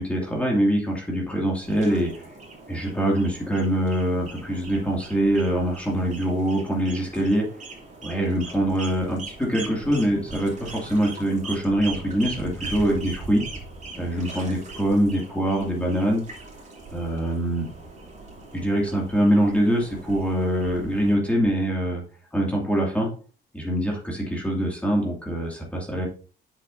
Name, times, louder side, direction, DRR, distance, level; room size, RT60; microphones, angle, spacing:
voice 1, 0.0-2.3 2.7-7.5 8.0-13.4 13.9-16.2 16.9-17.7 18.5-22.0 22.3-23.1 23.5-26.1, right 1 dB, 5° left, -2 dB, 2.4 m, -24 dB
sound 1, 1.6-21.2, right 3 dB, 40° right, 3.2 m, -40 dB
7.6 x 6.9 x 2.7 m, 0.39 s
cardioid pair, 90°, 20 cm